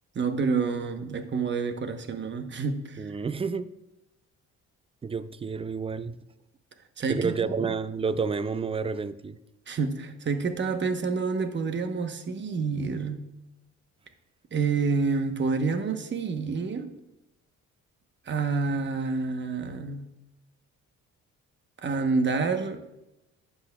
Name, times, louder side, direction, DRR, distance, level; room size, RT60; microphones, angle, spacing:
voice 1, 0.1-3.1 7.0-7.3 9.7-13.2 14.5-16.9 18.3-20.0 21.8-22.8, right 4 dB, 40° right, 0.9 m, -28 dB
voice 2, 3.0-3.7 5.0-6.2 7.1-9.4, right 5 dB, 20° right, 0.4 m, -30 dB
11.5 x 8.2 x 2.3 m
cardioid pair, 90°, 30 cm